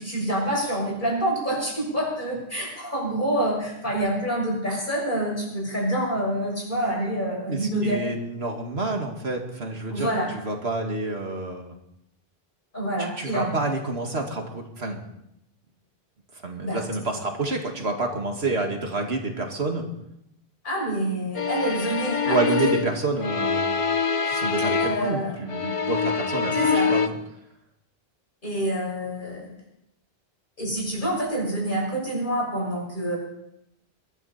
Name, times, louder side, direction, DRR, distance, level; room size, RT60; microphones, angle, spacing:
voice 1, 0.0-8.0 9.9-10.3 12.7-13.5 16.6-16.8 20.6-22.7 24.8-25.4 26.5-26.9 28.4-29.5 30.6-33.2, right 1 dB, 55° left, -2 dB, 6.7 m, -27 dB
voice 2, 7.5-11.7 13.2-15.0 16.4-19.8 22.3-23.8 24.3-27.1, right 2 dB, 90° right, 2 dB, 2.5 m, -28 dB
sound 1, 21.3-25.2 25.5-27.1, left 5 dB, 35° left, 0.8 m, -25 dB
21.5 x 13.0 x 4.3 m, 0.79 s
omnidirectional pair, 1.0 m